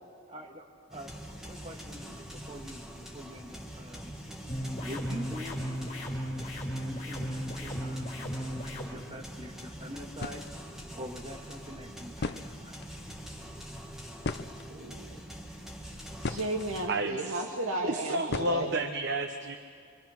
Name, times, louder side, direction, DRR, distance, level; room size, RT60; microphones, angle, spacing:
voice 1, 0.3-4.1 4.8-5.7 6.8-10.4 10.9-12.9, equal, 30° right, 1 dB, 2.0 m, -45 dB
sound 1, 0.9-16.9, equal, ahead, 1.8 m, -44 dB
sound 2, 4.5-8.9, equal, 30° left, 4.0 m, -35 dB
sound 3, 9.8-9.9 10.1-10.5 11.8-11.9 12.1-12.9 14.2-15.0 15.7-16.7 18.3-18.9, left 3 dB, 50° left, 0.6 m, -36 dB
voice 2, 14.7-15.2 16.3-18.8, right 1 dB, 80° right, 2 dB, 2.3 m, -34 dB
voice 3, 16.9-17.4 17.8-19.6, right 2 dB, 55° right, 7 dB, 0.9 m, -31 dB
25.0 x 24.0 x 6.0 m, 2.2 s
head